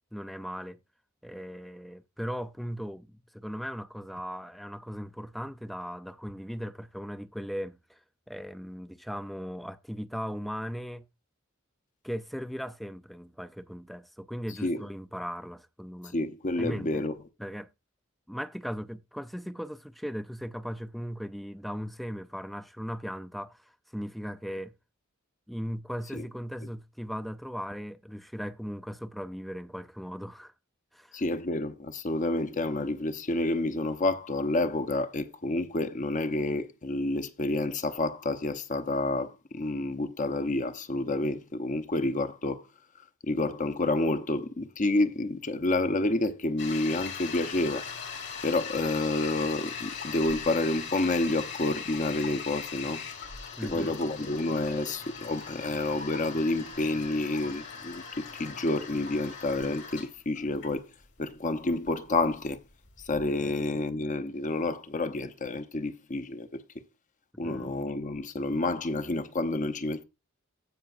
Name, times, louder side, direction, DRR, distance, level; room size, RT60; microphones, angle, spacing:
voice 1, 0.1-0.8 1.2-8.0 8.3-11.0 12.0-16.2 16.6-17.0 17.4-17.7 18.3-24.7 25.5-30.5 30.9-31.2 53.6-53.9 54.2-54.3 63.4-63.5 67.4-67.8, equal, ahead, 0.4 m, -38 dB
voice 2, 16.1-17.2 26.1-26.2 31.1-42.6 43.3-47.9 48.4-53.0 53.6-60.9 61.2-62.6 63.1-66.6 67.4-70.0, left 2 dB, 40° left, 0.8 m, -29 dB
Toilet flush, 46.6-63.3, left 6 dB, 55° left, 2.4 m, -40 dB
16.0 x 5.8 x 2.5 m
head